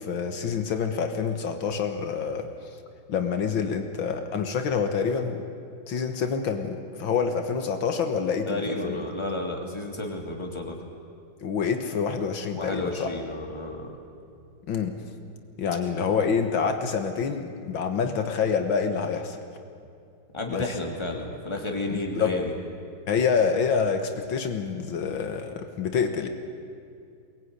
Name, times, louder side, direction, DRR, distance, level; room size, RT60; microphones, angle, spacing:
voice 1, 0.0-2.5 3.1-5.4 5.9-9.0 11.4-13.1 14.7-14.9 15.6-19.4 20.5-20.6 21.9-22.3 23.1-26.3, left 6 dB, 80° left, 6 dB, 2.2 m, -27 dB
voice 2, 8.5-10.8 12.5-14.0 20.3-22.5, left 2 dB, 15° left, 1 dB, 3.0 m, -31 dB
23.0 x 20.0 x 9.8 m, 2.4 s
omnidirectional pair, 2.1 m